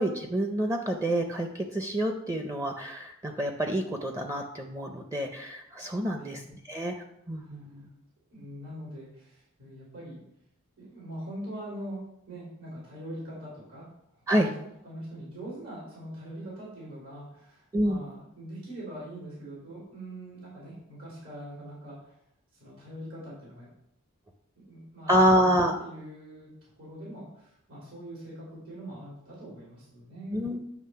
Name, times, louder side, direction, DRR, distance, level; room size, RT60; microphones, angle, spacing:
voice 1, 0.0-6.4 6.7-6.9 7.3-7.9 14.3-14.5 17.7-18.0 25.1-25.7 30.3-30.6, equal, 15° right, 4 dB, 0.5 m, -27 dB
voice 2, 8.3-10.2 10.8-12.0 12.3-13.9 14.1-14.5 14.8-22.1 22.5-23.7 24.6-30.4, right 1 dB, 80° right, -7 dB, 3.2 m, -42 dB
9.5 x 3.2 x 5.6 m, 0.77 s
head